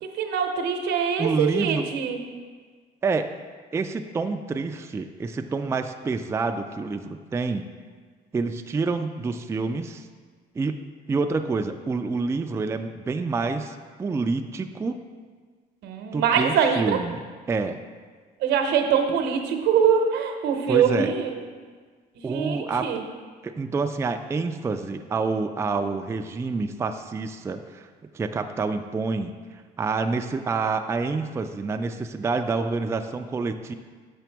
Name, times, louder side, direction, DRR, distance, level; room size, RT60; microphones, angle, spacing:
voice 1, 0.0-2.2 15.8-17.0 18.4-21.4 22.3-23.0, right 7 dB, 80° right, 4 dB, 0.9 m, -23 dB
voice 2, 1.2-1.8 3.0-3.3 3.7-7.6 8.3-10.1 10.6-10.8 11.1-15.0 16.1-17.2 17.5-17.8 20.7-21.1 22.2-22.9 23.4-27.9 28.1-29.3 29.8-33.7, right 4 dB, 15° right, 6 dB, 0.3 m, -27 dB
7.1 x 5.1 x 4.5 m, 1.5 s
cardioid pair, 110°, 17 cm